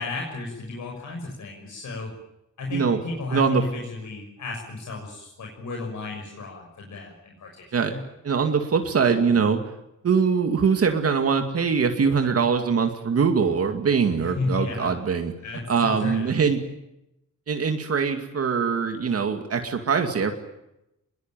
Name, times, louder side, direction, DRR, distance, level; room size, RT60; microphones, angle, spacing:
voice 1, 0.0-2.1 2.6-8.0 14.2-14.9 15.4-16.3, left 3 dB, 65° left, 1 dB, 6.3 m, -33 dB
voice 2, 3.3-3.6 7.7-7.9 8.2-9.7 10.0-15.3 15.7-16.6 17.5-20.3, right 6 dB, 45° right, 6 dB, 2.4 m, -22 dB
26.0 x 21.5 x 9.2 m, 0.87 s
wide cardioid pair, 150°, 32 cm